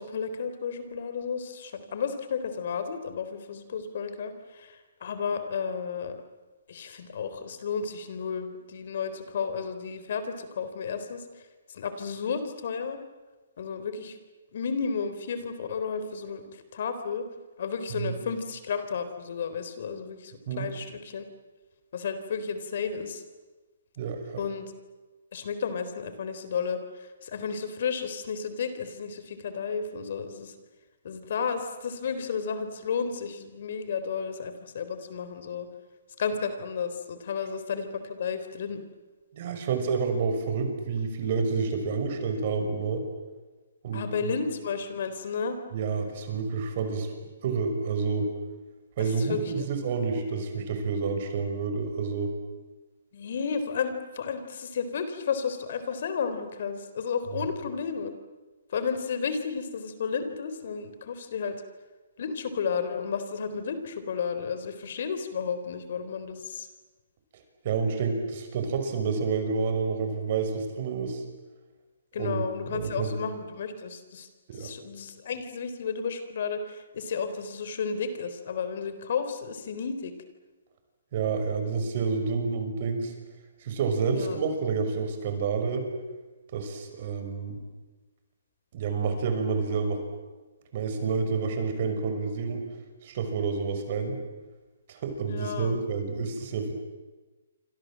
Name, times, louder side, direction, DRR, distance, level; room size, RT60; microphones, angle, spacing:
voice 1, 0.0-6.2 6.7-11.2 11.7-13.0 13.6-14.2 14.5-17.3 17.6-21.3 21.9-23.2 24.4-24.7 25.3-30.5 31.0-35.7 36.2-38.8 43.9-45.6 49.0-49.7 53.1-58.1 58.7-61.6 62.2-66.7 72.1-74.3 74.5-80.1 84.1-84.4 95.3-95.7, left 6 dB, 55° left, 10 dB, 3.8 m, -32 dB
voice 2, 24.0-24.4 39.3-43.0 43.8-44.3 45.7-47.1 47.4-48.3 49.0-52.3 57.4-57.5 67.6-71.2 72.2-73.1 74.5-74.7 81.1-83.1 83.6-85.9 86.5-87.6 88.7-90.0 90.7-92.6 93.0-94.2 94.9-96.7, right 5 dB, 45° right, 6 dB, 6.0 m, -29 dB
28.0 x 26.0 x 7.7 m, 1.2 s
hypercardioid pair, 150°, 0 cm